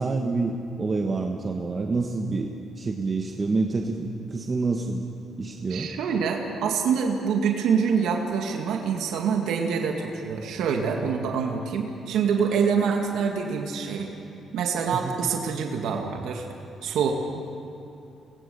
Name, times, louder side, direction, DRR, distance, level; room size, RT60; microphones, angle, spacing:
voice 1, 0.0-5.0 5.4-5.9 14.9-15.2, right 3 dB, 35° right, 2 dB, 1.5 m, -27 dB
voice 2, 5.7-14.1 14.5-16.5 16.8-17.1, right 6 dB, 80° right, 2 dB, 2.0 m, -25 dB
24.5 x 20.0 x 7.0 m, 2.9 s
cardioid pair, 90°, 0 cm